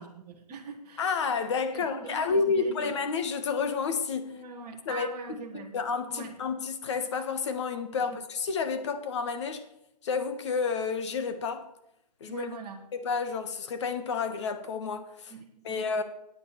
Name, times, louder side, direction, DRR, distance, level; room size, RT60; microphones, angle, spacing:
voice 1, 0.0-1.2 1.7-2.9 4.3-5.8 6.1-6.3 8.0-8.2 12.3-12.9 15.3-16.0, right 5 dB, 20° right, 1.3 m, -42 dB
voice 2, 1.0-4.3 4.8-5.1 5.7-9.7 10.0-11.7 12.2-12.5 12.9-15.3 15.6-16.0, left 5 dB, 45° left, 1.5 m, -30 dB
9.6 x 8.9 x 6.8 m
hypercardioid pair, 160°, 21 cm